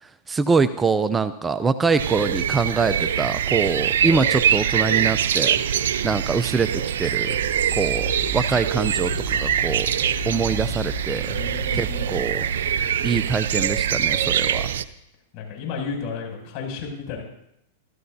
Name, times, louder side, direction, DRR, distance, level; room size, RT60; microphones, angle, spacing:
voice 1, 0.3-5.6 6.0-7.4 7.7-9.9 10.3-11.4 11.7-12.5 13.0-14.7, right 5 dB, 15° right, 11 dB, 0.6 m, -24 dB
sound 1, 2.0-14.8, right 9 dB, 75° right, 0.7 m, -24 dB
sound 2, 7.3-13.2, left 2 dB, 80° left, 3.1 m, -35 dB
voice 2, 11.3-12.2 15.3-17.2, left 5 dB, 50° left, 0 dB, 7.5 m, -33 dB
26.0 x 14.5 x 2.8 m, 0.80 s
hypercardioid pair, 115°, 0 cm